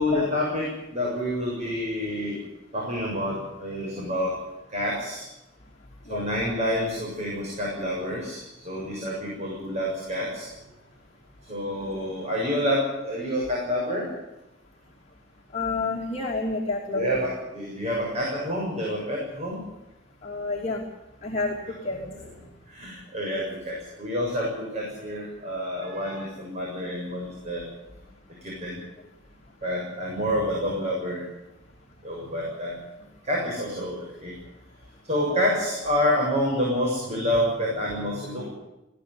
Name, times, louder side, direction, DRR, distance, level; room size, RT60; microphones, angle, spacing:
voice 1, 0.0-2.4 2.7-4.4 4.7-5.3 6.1-10.5 11.5-14.1 16.9-19.6 21.9-22.3 22.7-27.6 28.4-28.8 29.6-31.2 32.0-32.8 33.2-34.3 35.0-38.5, equal, 35° right, -3 dB, 7.2 m, -28 dB
voice 2, 15.5-17.2 20.2-20.8 21.2-22.0, left 3 dB, 35° left, -2 dB, 2.6 m, -29 dB
19.5 x 16.5 x 9.6 m, 0.96 s
head